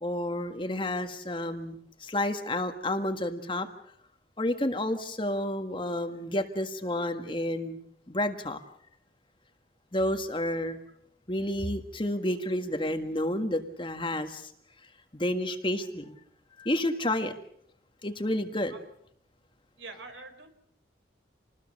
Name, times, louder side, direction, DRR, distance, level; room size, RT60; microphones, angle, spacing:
voice 1, 0.0-3.7 4.4-7.8 8.1-8.6 9.9-10.8 11.3-14.5 15.1-16.1 16.6-17.3 18.0-18.7, left 1 dB, 25° left, 7 dB, 1.7 m, -30 dB
voice 2, 19.8-20.5, right 3 dB, 75° right, 8 dB, 4.3 m, -45 dB
27.5 x 20.5 x 6.6 m, 0.69 s
head